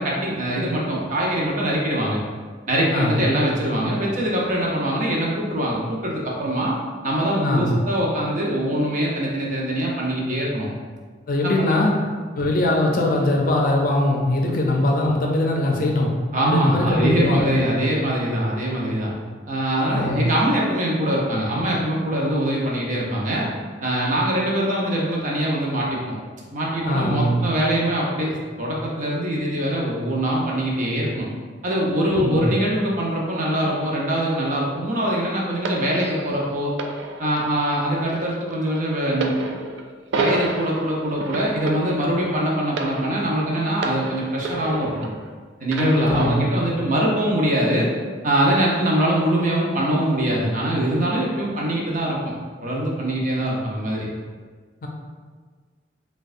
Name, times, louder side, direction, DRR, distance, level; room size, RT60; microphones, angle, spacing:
voice 1, 0.0-2.2 2.7-6.7 7.0-10.7 11.4-11.8 16.3-19.1 19.5-23.5 23.8-26.1 26.5-31.3 31.6-36.7 37.2-39.3 40.1-45.1 45.6-47.9 48.2-52.2 52.6-54.1, right 1 dB, 45° right, -3 dB, 0.7 m, -23 dB
voice 2, 2.9-3.2 7.4-7.8 11.3-11.9 12.3-16.1 16.4-17.6 19.9-20.3 26.8-27.5 32.1-32.5 45.8-46.5 54.8-54.9, left 1 dB, 50° left, 0 dB, 0.5 m, -21 dB
sound 1, 35.6-45.3 45.7-46.7 47.5-47.7, right 3 dB, 75° right, 0.4 m, -31 dB
4.5 x 2.3 x 2.5 m, 1.5 s
head